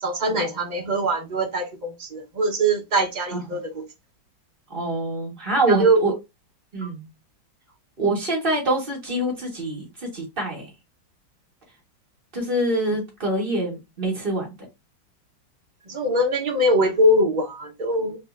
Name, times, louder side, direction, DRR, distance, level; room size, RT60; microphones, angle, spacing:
voice 1, 0.0-3.8 5.8-6.0 12.9-13.0 15.9-18.2, right 1 dB, 50° right, 0.5 m, -22 dB
voice 2, 4.7-6.1 6.7-7.1 8.0-10.7 12.3-14.6, right 1 dB, 30° right, 1.8 m, -25 dB
5.5 x 3.0 x 2.6 m
omnidirectional pair, 2.1 m